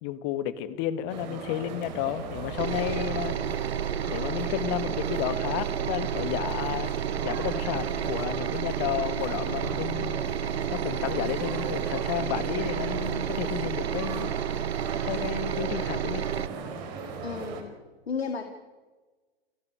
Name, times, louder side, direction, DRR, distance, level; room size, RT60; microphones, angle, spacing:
voice 1, 0.0-3.4 4.1-6.9 7.2-10.2 10.7-14.3 15.0-16.2, left 12 dB, 35° left, 14 dB, 1.6 m, -32 dB
sound 1, 1.1-17.6, right 5 dB, 45° right, 4.1 m, -38 dB
sound 2, 1.8-8.3 9.5-10.6, right 2 dB, 60° right, 4.4 m, -46 dB
sound 3, 2.6-16.5, right 9 dB, 75° right, 0.6 m, -31 dB
voice 2, 17.2-17.8 18.1-18.4, left 5 dB, 75° left, 7 dB, 2.0 m, -32 dB
29.0 x 11.5 x 9.6 m, 1.3 s
figure-of-eight pair, 110°, 31 cm